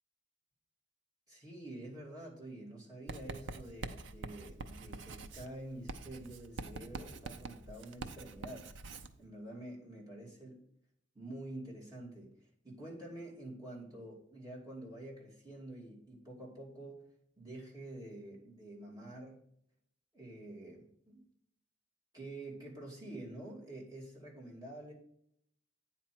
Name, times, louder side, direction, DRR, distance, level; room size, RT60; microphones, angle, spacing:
voice 1, 1.3-8.7 9.2-10.7 11.1-17.1 17.4-19.4 20.1-21.2 22.1-24.9, right 1 dB, 20° right, -4 dB, 2.5 m, -48 dB
Writing, 3.1-9.1, right 3 dB, 75° right, 0.6 m, -45 dB
9.1 x 4.5 x 6.0 m, 0.71 s
head